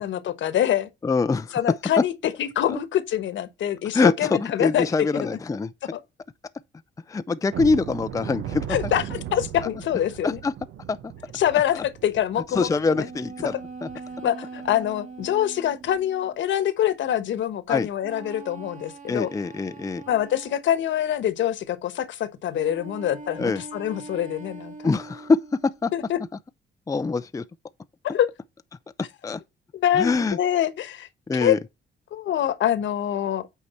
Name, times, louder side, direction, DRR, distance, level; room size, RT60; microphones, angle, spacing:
voice 1, 0.0-0.9 1.5-2.1 2.4-5.4 5.9-6.0 8.7-10.4 11.3-13.1 14.2-19.3 20.1-24.7 25.9-26.2 28.0-28.3 29.7-31.1 31.3-31.6 32.1-33.4, left 11 dB, 70° left, 1.2 m, -25 dB
voice 2, 1.0-1.6 2.7-2.8 3.9-5.7 7.1-8.7 10.2-10.5 10.9-11.0 12.5-13.5 13.8-13.9 17.7-17.9 19.1-20.0 23.4-23.6 24.8-25.4 25.8-25.9 26.9-27.4 29.2-29.4 30.0-30.4 31.3-31.6, left 4 dB, 15° left, 0.5 m, -24 dB
sound 1, 7.5-14.2 14.6-14.8 15.2-15.3 15.8-16.0, right 11 dB, 80° right, 0.9 m, -37 dB
sound 2, 12.9-16.4 18.0-20.9 22.5-25.8, right 4 dB, 40° right, 1.9 m, -42 dB
8.4 x 4.7 x 4.3 m
cardioid pair, 90°, 20 cm